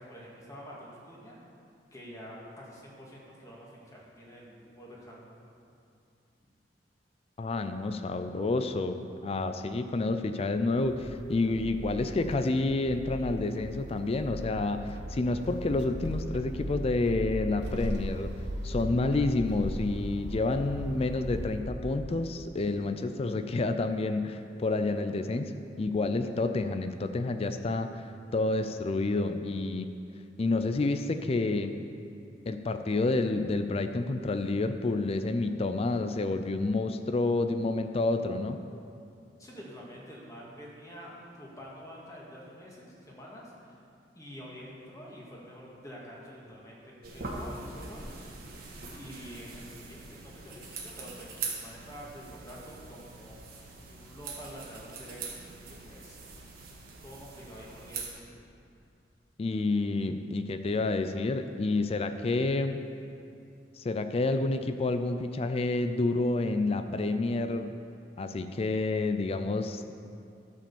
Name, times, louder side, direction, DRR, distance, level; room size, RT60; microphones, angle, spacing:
voice 1, 0.0-1.4 1.9-5.4 39.4-43.8 44.2-48.4 48.9-55.4 55.7-56.2 57.0-58.3, equal, 20° left, -4 dB, 1.9 m, -47 dB
voice 2, 7.4-18.3 18.6-25.5 25.8-28.0 28.3-29.9 30.4-31.7 32.5-38.6 59.4-62.8 63.8-67.7 68.2-69.8, left 2 dB, 35° left, 8 dB, 0.4 m, -29 dB
sound 1, 10.8-21.6, equal, 70° right, 0.9 m, -38 dB
sound 2, 47.0-58.1, right 4 dB, 55° right, 1.7 m, -42 dB
12.0 x 5.0 x 7.1 m, 2.5 s
head